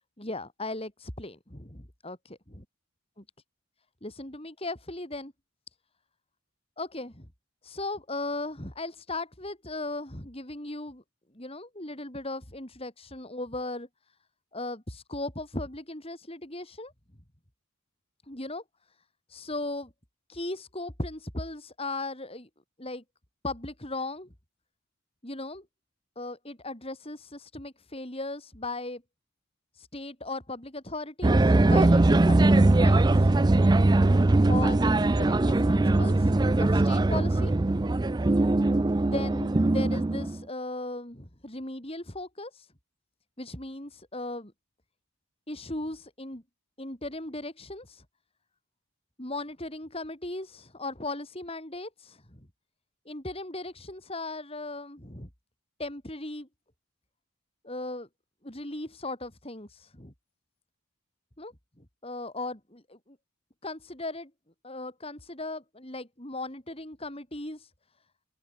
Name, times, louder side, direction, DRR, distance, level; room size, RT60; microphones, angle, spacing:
voice 1, 0.2-2.4 3.2-3.3 4.0-5.3 6.8-7.3 7.6-11.0 11.3-13.9 14.5-16.9 18.3-18.6 19.3-19.9 20.3-22.5 22.8-23.0 23.4-24.3 25.2-25.7 26.2-29.0 29.7-33.3 34.5-34.9 35.2-37.5 39.0-42.7 43.4-44.5 45.5-46.4 46.8-48.0 49.2-52.4 53.1-55.3 55.8-56.5 57.6-58.1 58.4-60.1 61.4-61.5 62.0-63.2 63.6-64.3 64.6-67.7, left 2 dB, 25° left, 3.9 m, -37 dB
sound 1, 31.2-40.4, right 2 dB, 20° right, 0.4 m, -21 dB
open air
head